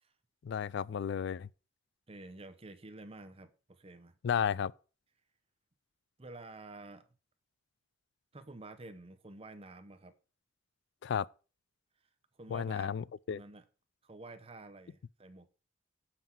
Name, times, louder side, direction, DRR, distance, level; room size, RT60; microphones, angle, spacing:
voice 1, 0.4-1.5 4.2-4.7 11.0-11.3 12.5-13.4, left 7 dB, 60° left, 0.3 m, -33 dB
voice 2, 2.1-4.2 6.2-7.1 8.3-10.1 12.4-13.0 13.3-13.6 14.0-15.5, right 2 dB, 30° right, 0.8 m, -50 dB
7.2 x 5.9 x 5.9 m
head